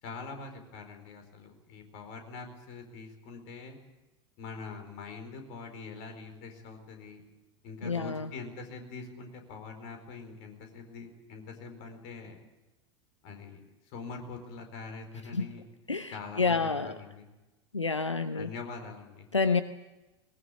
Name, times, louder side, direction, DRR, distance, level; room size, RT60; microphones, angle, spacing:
voice 1, 0.0-3.8 4.4-7.2 7.6-12.4 13.2-13.6 13.9-15.6 16.1-17.3 18.3-19.3, left 4 dB, 45° left, 5 dB, 4.5 m, -44 dB
voice 2, 7.8-8.3 15.3-15.5 15.9-16.9 17.7-18.5 19.3-19.6, left 4 dB, 85° left, 12 dB, 0.7 m, -28 dB
21.0 x 20.5 x 8.1 m, 1.1 s
figure-of-eight pair, 85°, 15 cm